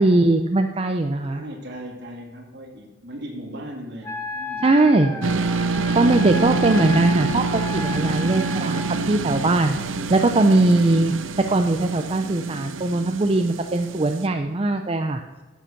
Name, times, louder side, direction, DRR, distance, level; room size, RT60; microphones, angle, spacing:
voice 1, 0.0-1.4 4.6-5.1 6.0-8.8 9.1-9.8 10.1-11.1 11.5-15.2, right 2 dB, 30° right, 5 dB, 0.6 m, -20 dB
voice 2, 1.3-5.3, equal, 60° right, 1 dB, 2.4 m, -39 dB
Wind instrument woodwind instrument, 4.0-8.9, left 2 dB, 15° left, 1.2 m, -33 dB
sound 1, 5.2-14.3, right 4 dB, 90° right, 0.6 m, -26 dB
10.0 x 7.7 x 6.6 m, 1.2 s
head